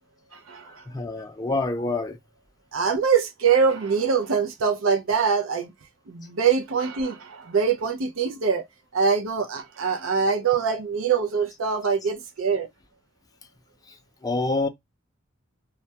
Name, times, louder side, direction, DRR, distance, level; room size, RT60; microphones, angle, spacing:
voice 1, 0.9-2.2 14.2-14.7, left 2 dB, 20° left, 0.4 m, -26 dB
voice 2, 2.7-5.7 6.1-8.7 8.9-12.7, right 6 dB, 90° right, 0.5 m, -23 dB
2.2 x 2.2 x 2.7 m
head